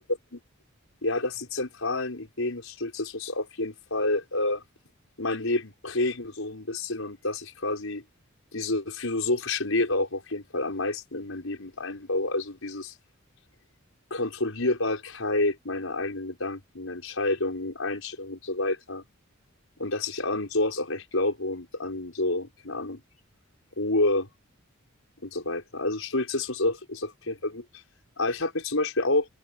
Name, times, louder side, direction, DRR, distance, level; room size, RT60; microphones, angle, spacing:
voice 1, 1.0-4.6 5.2-8.0 8.5-12.9 14.1-19.0 19.8-23.0 23.8-24.3 25.2-27.6 28.2-29.3, left 2 dB, 80° left, 5.4 m, -29 dB
open air
head